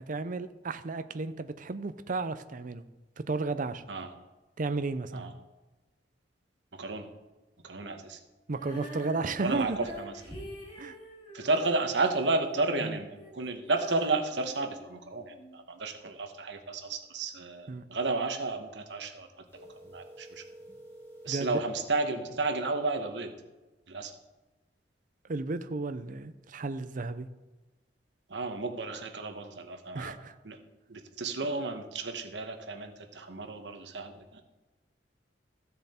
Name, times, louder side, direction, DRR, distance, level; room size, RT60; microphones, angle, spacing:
voice 1, 0.0-2.8 3.3-3.8 4.6-5.3 8.5-9.8 10.8-11.0 12.8-13.0 17.7-17.8 21.3-21.5 25.3-27.3 29.9-30.3, right 3 dB, 50° right, 11 dB, 0.6 m, -33 dB
voice 2, 6.7-7.1 7.6-8.2 9.4-10.4 11.3-19.3 19.7-20.4 21.2-23.3 23.9-24.1 28.3-30.2 30.4-30.6 30.9-34.4, right 3 dB, 80° right, 6 dB, 1.2 m, -32 dB
Female singing, 8.5-15.5, equal, 30° left, 2.7 m, -46 dB
sound 1, 19.5-21.6, right 1 dB, 15° left, 3.0 m, -50 dB
14.5 x 6.9 x 4.3 m, 1.1 s
head